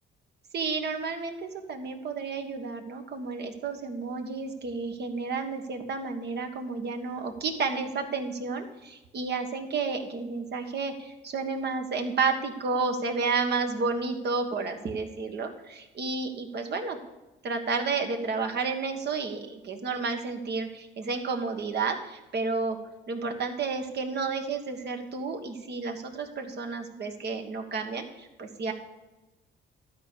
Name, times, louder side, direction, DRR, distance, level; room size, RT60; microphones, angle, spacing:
voice 1, 0.5-17.0 17.4-22.8 23.1-28.7, right 4 dB, 55° right, 5 dB, 1.5 m, -31 dB
12.0 x 4.9 x 6.9 m, 1.1 s
cardioid pair, 90°, 20 cm